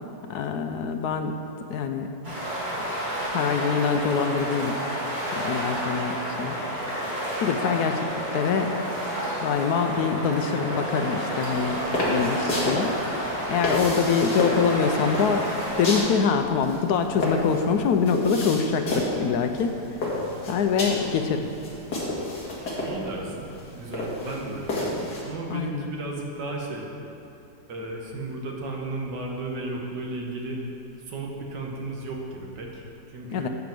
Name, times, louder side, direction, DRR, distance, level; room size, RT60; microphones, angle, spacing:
voice 1, 0.3-1.3 1.7-2.3 3.3-4.8 5.3-6.6 7.4-8.1 8.3-8.7 9.4-11.8 12.1-12.9 13.5-15.5 15.8-19.8 20.5-21.5 25.5-25.9 33.3-33.5, left 6 dB, 70° left, 6 dB, 0.9 m, -24 dB
sound 1, 2.2-16.0, right 1 dB, 30° right, 2.9 m, -30 dB
sound 2, 11.3-25.2, left 1 dB, 55° left, 2.4 m, -31 dB
voice 2, 22.8-26.9 27.7-30.6 31.1-33.5, right 2 dB, 65° right, -1 dB, 1.8 m, -34 dB
9.2 x 5.0 x 7.6 m, 2.8 s
omnidirectional pair, 2.1 m